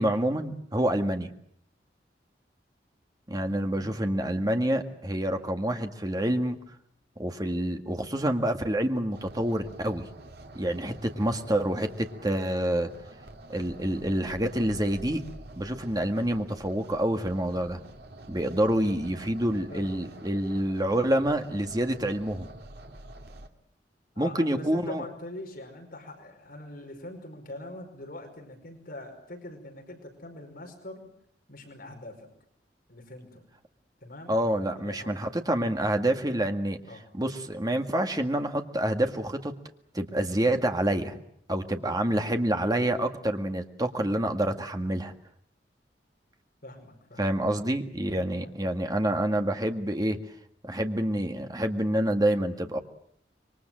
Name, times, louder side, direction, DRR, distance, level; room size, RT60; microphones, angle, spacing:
voice 1, 0.0-1.3 3.3-6.6 7.2-10.1 10.6-12.9 13.5-15.2 15.6-17.8 18.3-22.5 24.2-25.0 34.3-36.8 37.1-39.5 39.9-41.2 41.5-45.1 47.2-50.2 50.6-52.8, right 1 dB, 20° right, 6 dB, 1.9 m, -27 dB
voice 2, 3.7-4.0 18.9-19.0 19.7-20.0 24.2-31.1 31.5-32.3 32.9-33.5 34.0-34.4 34.8-35.2 36.9-37.1 46.6-47.3 48.4-48.5, left 1 dB, 55° left, 4 dB, 5.3 m, -43 dB
sound 1, 9.1-23.5, right 1 dB, 65° right, 2.3 m, -47 dB
27.0 x 23.0 x 7.6 m, 0.68 s
head